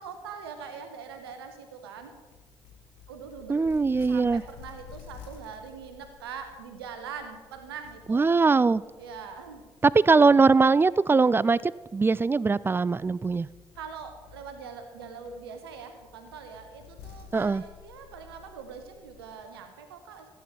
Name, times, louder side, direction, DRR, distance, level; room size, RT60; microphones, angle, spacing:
voice 1, 0.0-2.1 3.1-3.6 4.0-8.3 9.0-9.6 13.8-20.3, right 6 dB, 75° right, 7 dB, 1.1 m, -42 dB
sound 1, 2.0-19.4, left 8 dB, 70° left, 1.3 m, -53 dB
voice 2, 3.5-4.4 8.1-8.8 9.8-13.5 17.3-17.6, right 4 dB, 15° right, 21 dB, 0.3 m, -21 dB
15.0 x 8.3 x 4.5 m, 1.3 s
figure-of-eight pair, 40°, 13 cm